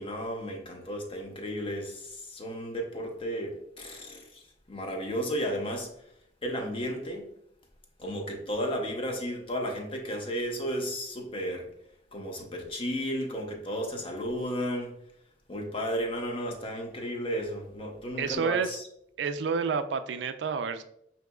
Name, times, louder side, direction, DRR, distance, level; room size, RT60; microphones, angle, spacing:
voice 1, 0.0-4.4 4.7-5.9 6.4-7.3 8.0-11.7 12.1-15.0 15.5-18.9, equal, 30° left, 2 dB, 0.7 m, -33 dB
voice 2, 18.2-18.8 19.2-20.8, right 5 dB, 85° right, 9 dB, 0.4 m, -29 dB
6.0 x 2.9 x 2.3 m, 0.73 s
head